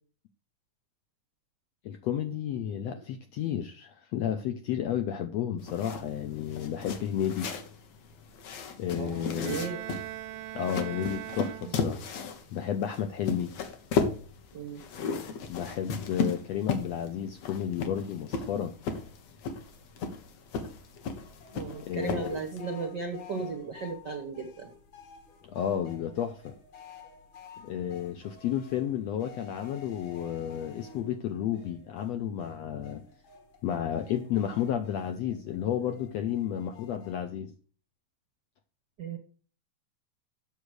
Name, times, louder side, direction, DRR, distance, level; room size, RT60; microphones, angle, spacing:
voice 1, 1.8-7.5 8.8-9.6 10.5-12.0 12.5-13.5 15.5-18.7 21.8-22.4 25.5-26.5 27.6-33.1 33.6-37.5, left 9 dB, 75° left, 1.5 m, -32 dB
sound 1, 5.6-22.6, left 5 dB, 60° left, 2.2 m, -35 dB
voice 2, 8.9-9.8 11.6-11.7 14.5-14.8 21.5-24.7 39.0-39.2, right 5 dB, 65° right, 1.0 m, -35 dB
Bowed string instrument, 9.4-12.2, right 16 dB, 85° right, 2.3 m, -41 dB
sound 2, 21.2-37.2, left 6 dB, 40° left, 2.0 m, -51 dB
8.1 x 7.3 x 6.4 m
omnidirectional pair, 3.9 m